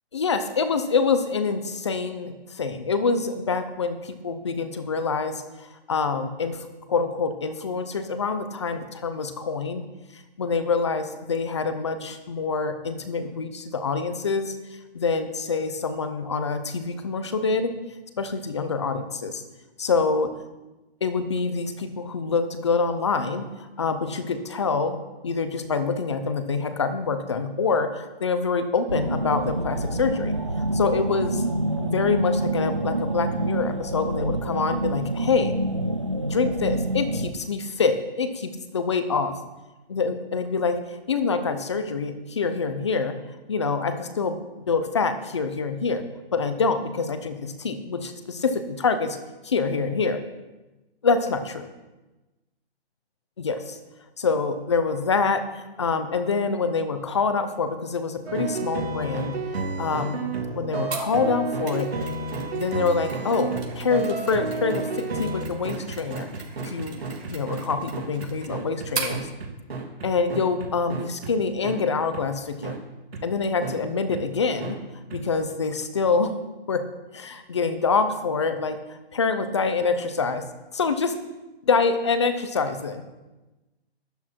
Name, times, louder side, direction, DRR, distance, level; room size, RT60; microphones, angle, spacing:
voice 1, 0.1-9.8 10.1-14.5 14.9-17.8 18.2-19.4 19.8-20.3 21.0-25.0 25.2-30.3 30.7-31.4 31.8-35.5 36.2-39.4 39.9-43.2 43.5-46.1 46.3-49.2 49.4-50.2 51.0-51.7 53.4-53.8 54.2-59.4 59.8-60.2 60.5-62.1 62.5-66.3 66.6-67.0 67.3-69.3 70.0-72.8 73.2-74.8 75.1-76.4 76.7-76.9 77.1-80.5 80.7-81.1 81.6-83.0, left 4 dB, 25° left, 9 dB, 0.8 m, -26 dB
sound 1, 28.9-37.3, right 1 dB, 30° right, 0.4 m, -27 dB
sound 2, 58.3-71.3 71.6-71.8 72.1-72.2 72.6-72.8 73.1-73.2 73.6-73.8 74.1-74.2 74.6-74.7 75.1-75.2, right 3 dB, 70° right, 3.1 m, -31 dB
Mechanisms, 60.9-69.2, right 5 dB, 85° right, 4.3 m, -39 dB
12.5 x 11.0 x 4.6 m, 1.1 s
hypercardioid pair, 175°, 32 cm